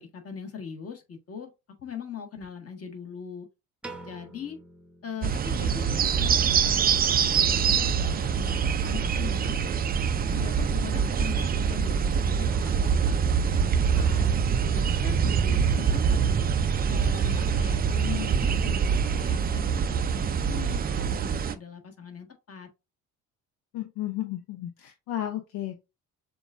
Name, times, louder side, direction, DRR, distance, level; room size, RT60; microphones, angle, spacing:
voice 1, 0.0-1.5 1.8-3.5 4.0-4.6 5.0-9.6 10.2-14.3 14.6-16.4 16.9-22.7, left 7 dB, 35° left, 1.5 m, -40 dB
Piano, 3.8-6.1, right 2 dB, 5° right, 0.9 m, -46 dB
sound 1, 5.2-21.5, right 7 dB, 25° right, 0.4 m, -24 dB
voice 2, 23.7-25.8, left 13 dB, 65° left, 0.7 m, -33 dB
6.9 x 2.4 x 2.4 m
hypercardioid pair, 60°, 40 cm